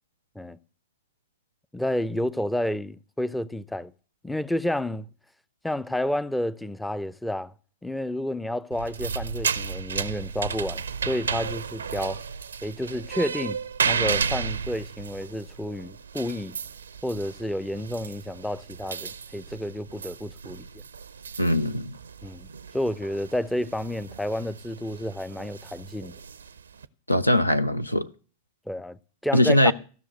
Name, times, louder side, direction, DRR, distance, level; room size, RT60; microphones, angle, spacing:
voice 1, 1.7-3.9 4.2-5.1 5.6-7.5 7.8-12.2 12.6-13.6 13.8-16.6 17.0-20.7 22.2-22.5 22.7-26.2 28.7-29.7, left 1 dB, 5° left, 0.5 m, -30 dB
sound 1, 8.7-26.8, right 6 dB, 70° right, 0.5 m, -33 dB
voice 2, 21.4-21.9 27.1-28.1 29.3-29.7, left 1 dB, 85° left, 0.5 m, -21 dB
15.0 x 6.2 x 7.9 m
figure-of-eight pair, 90°, 0 cm